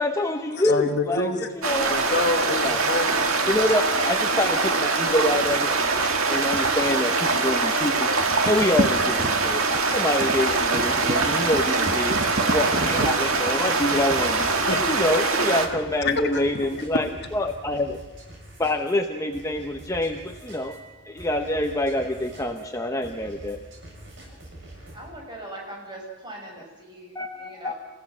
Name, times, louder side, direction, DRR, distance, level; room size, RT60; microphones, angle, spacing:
voice 1, 0.0-2.0 2.6-2.8 3.5-5.7 6.3-8.1 8.4-9.7 9.9-18.0 18.6-23.6 27.1-27.7, left 1 dB, 15° left, 5 dB, 0.8 m, -26 dB
voice 2, 0.6-1.5 1.9-3.7 14.7-15.8 16.0-16.4, left 3 dB, 55° left, 6 dB, 1.3 m, -27 dB
sound 1, 1.6-15.7, right 3 dB, 80° right, 1.9 m, -23 dB
sound 2, 5.4-7.6 7.8-15.1, right 2 dB, 40° right, 0.9 m, -33 dB
sound 3, 10.3-25.1, right 1 dB, 60° right, 7.2 m, -45 dB
voice 3, 24.9-27.7, right 1 dB, 20° right, -1 dB, 6.3 m, -40 dB
29.0 x 16.0 x 6.1 m, 1.2 s
head